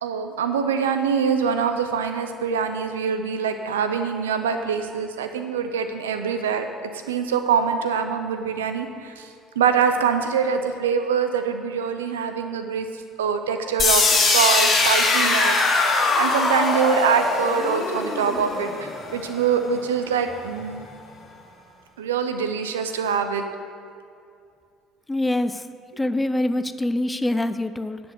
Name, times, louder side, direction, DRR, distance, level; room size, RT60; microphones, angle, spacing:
voice 1, 0.0-6.7 7.1-9.3 9.6-12.9 13.2-20.9 22.0-23.4, right 6 dB, 85° right, 7 dB, 0.6 m, -24 dB
sound 1, 13.8-19.7, left 3 dB, 40° left, 1.8 m, -21 dB
voice 2, 25.1-25.6 26.0-28.0, left 1 dB, 15° left, 12 dB, 0.5 m, -24 dB
10.5 x 5.2 x 6.9 m, 2.4 s
hypercardioid pair, 60°, 0 cm